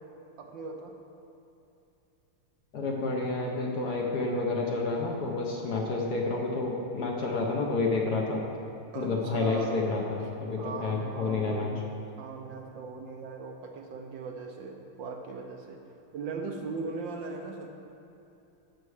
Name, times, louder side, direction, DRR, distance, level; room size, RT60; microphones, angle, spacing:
voice 1, 0.4-1.0 8.9-11.8 12.2-15.8 16.1-17.7, right 4 dB, 70° right, 3 dB, 1.3 m, -39 dB
voice 2, 2.7-8.4 8.9-11.7, left 3 dB, 55° left, 0 dB, 1.3 m, -29 dB
11.0 x 6.7 x 4.8 m, 2.8 s
omnidirectional pair, 2.4 m